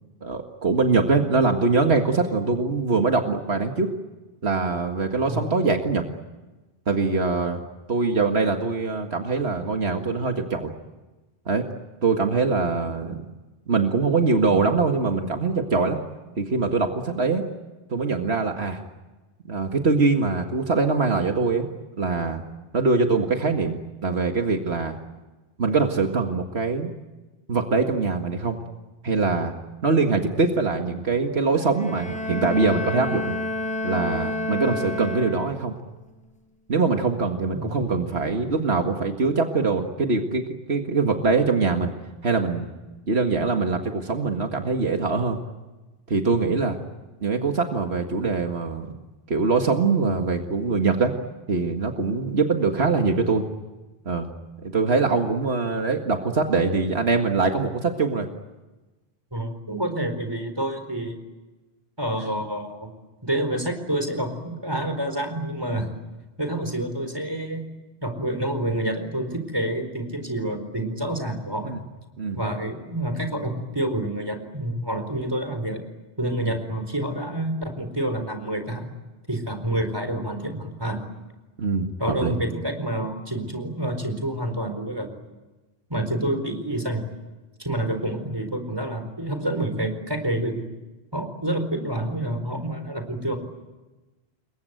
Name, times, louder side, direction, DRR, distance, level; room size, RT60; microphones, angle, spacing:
voice 1, 0.2-3.9 4.4-6.0 6.9-7.6 7.9-10.7 11.5-11.7 12.0-13.2 13.7-16.0 16.4-17.4 17.9-18.8 19.5-21.7 22.0-22.4 22.7-24.9 25.6-26.9 27.5-28.6 29.0-29.5 29.8-33.4 33.8-35.7 36.7-41.9 42.2-42.7 43.1-45.4 46.1-46.8 47.2-48.9 49.3-51.1 51.5-53.4 54.1-54.3 54.6-58.3 71.7-71.8 72.2-72.4 76.5-76.6 81.6-81.9 82.2-82.4, right 4 dB, 80° right, 4 dB, 2.1 m, -23 dB
Bowed string instrument, 31.7-35.8, left 1 dB, 5° left, 5.0 m, -29 dB
voice 2, 37.5-38.0 59.3-61.2 62.0-62.9 63.2-65.9 66.4-67.6 68.0-71.8 72.3-75.8 76.2-78.9 79.3-81.0 82.0-85.1 85.9-87.0 87.6-90.6 91.1-93.4, right 1 dB, 25° right, 8 dB, 4.4 m, -28 dB
29.0 x 22.5 x 9.2 m, 1.1 s
omnidirectional pair, 1.1 m